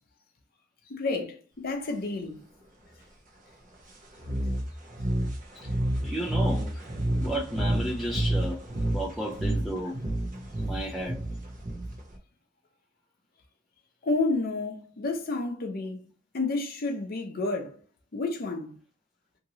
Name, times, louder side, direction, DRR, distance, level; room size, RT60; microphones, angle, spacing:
voice 1, 0.9-2.4 14.0-16.1 16.3-17.8 18.1-18.7, left 3 dB, 50° left, 0.6 m, -30 dB
sound 1, 4.2-12.2, right 1 dB, 45° right, 0.7 m, -29 dB
voice 2, 6.0-6.8 7.2-8.6 8.9-10.0 10.6-11.2, equal, ahead, 0.4 m, -33 dB
2.9 x 2.6 x 2.7 m
head